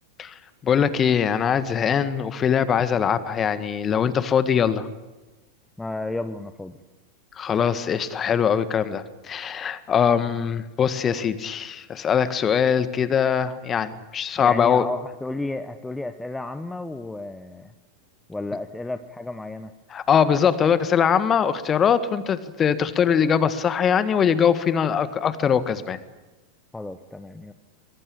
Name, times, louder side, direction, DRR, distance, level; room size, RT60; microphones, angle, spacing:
voice 1, 0.6-4.9 7.3-14.9 19.9-26.0, left 7 dB, 25° left, 13 dB, 1.7 m, -22 dB
voice 2, 5.8-6.8 14.4-17.7 18.3-19.7 26.7-27.5, left 2 dB, 5° left, 9 dB, 1.1 m, -32 dB
24.5 x 23.0 x 8.8 m, 1.1 s
figure-of-eight pair, 90°, 0 cm